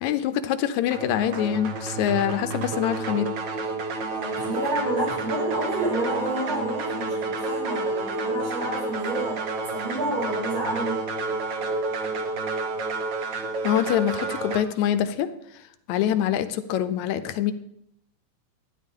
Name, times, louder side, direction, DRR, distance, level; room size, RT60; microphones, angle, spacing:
voice 1, 0.0-3.3 13.6-17.5, left 10 dB, 80° left, 11 dB, 1.9 m, -25 dB
sound 1, 0.9-14.6, right 3 dB, 75° right, 1.0 m, -30 dB
voice 2, 4.1-9.4 9.7-11.0, right 1 dB, 55° right, -5 dB, 5.6 m, -29 dB
12.5 x 10.5 x 3.7 m, 0.77 s
omnidirectional pair, 3.4 m